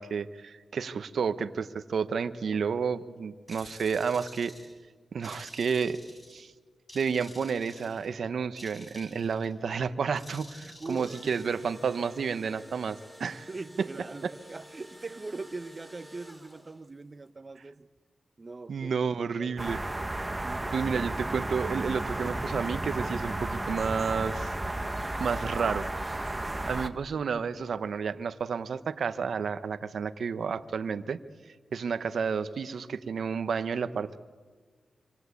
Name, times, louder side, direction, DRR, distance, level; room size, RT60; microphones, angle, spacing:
voice 1, 0.0-4.5 5.1-6.0 6.3-6.5 6.9-13.5 13.8-13.9 18.7-19.8 20.7-24.5 25.2-25.9 26.7-31.2 31.7-34.2, right 6 dB, 75° right, 12 dB, 1.0 m, -31 dB
sound 1, 3.5-4.8 5.2-6.5 6.9-8.1 8.6-9.5 10.2-11.5, left 1 dB, 30° left, 6.2 m, -51 dB
voice 2, 10.6-11.3 13.5-17.9 18.4-18.9 19.4-19.9 20.4-20.8 26.3-26.7, right 3 dB, 40° right, 12 dB, 1.1 m, -41 dB
Engine / Drill, 11.0-17.0, equal, 5° left, 4.5 m, -52 dB
sound 2, 19.6-26.9, right 1 dB, 20° right, 1.7 m, -33 dB
26.5 x 26.0 x 8.4 m, 1.5 s
cardioid pair, 55°, 0 cm